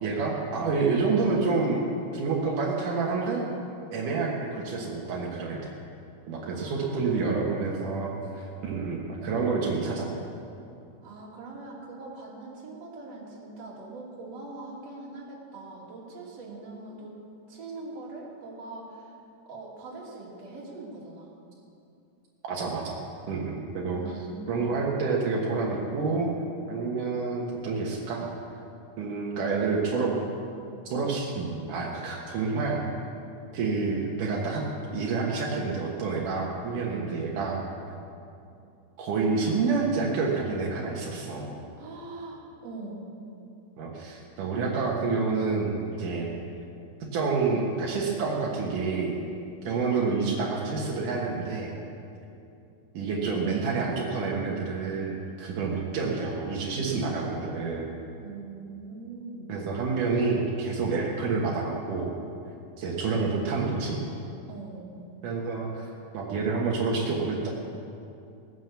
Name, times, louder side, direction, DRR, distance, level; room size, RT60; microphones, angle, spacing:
voice 1, 0.0-1.8 2.1-3.4 3.9-5.7 6.3-10.1 22.4-23.0 23.3-24.0 24.5-26.3 26.7-28.3 29.0-30.2 30.9-32.9 33.5-34.6 34.9-37.6 39.0-41.6 43.8-46.3 47.1-49.2 49.6-51.8 52.9-57.9 59.5-62.1 62.8-64.0 65.2-67.5, right 4 dB, 80° right, -3 dB, 3.0 m, -28 dB
voice 2, 6.4-7.6 11.0-17.2 17.5-19.2 19.5-21.3 23.9-24.8 36.9-37.1 41.8-43.0 58.2-59.5 64.5-64.9, right 3 dB, 55° right, -4 dB, 3.5 m, -42 dB
18.5 x 9.5 x 6.9 m, 2.6 s
omnidirectional pair, 3.6 m